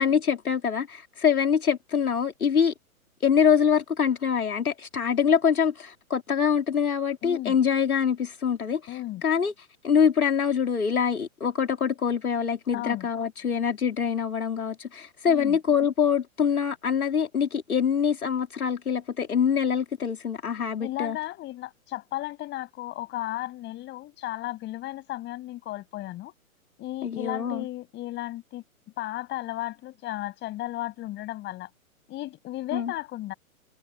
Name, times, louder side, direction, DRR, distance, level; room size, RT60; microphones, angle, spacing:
voice 1, 0.0-2.7 3.2-21.2 27.0-27.7 32.7-32.9, left 7 dB, 85° left, 2.8 m, -24 dB
voice 2, 7.2-7.6 8.9-9.2 12.7-13.1 15.3-15.6 20.8-26.3 26.8-28.6 29.0-31.7 32.1-33.3, left 16 dB, 25° left, 7.4 m, -34 dB
hypercardioid pair, 130°, 43 cm